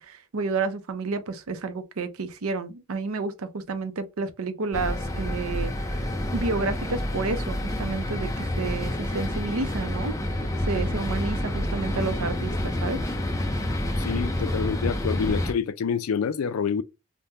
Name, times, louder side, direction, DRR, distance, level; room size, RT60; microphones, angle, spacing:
voice 1, 0.0-13.0, right 3 dB, 90° right, 0.6 m, -31 dB
sound 1, 4.7-15.5, left 1 dB, 15° left, 0.4 m, -28 dB
voice 2, 14.0-16.8, left 6 dB, 85° left, 0.4 m, -27 dB
3.5 x 2.1 x 2.7 m
head